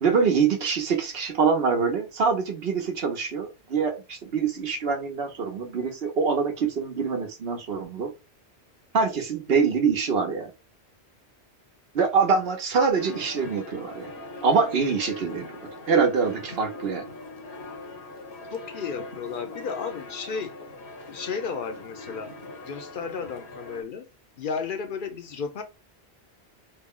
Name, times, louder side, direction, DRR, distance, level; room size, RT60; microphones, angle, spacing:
voice 1, 0.0-8.1 8.9-10.5 11.9-14.1 14.4-15.4 15.9-17.0, right 5 dB, 70° right, 1.0 m, -24 dB
sound 1, 12.9-23.8, left 2 dB, 75° left, 1.1 m, -41 dB
voice 2, 18.5-20.6 21.1-22.3 22.7-24.1 24.4-25.6, left 5 dB, 60° left, 0.7 m, -33 dB
3.2 x 2.1 x 3.6 m
omnidirectional pair, 1.1 m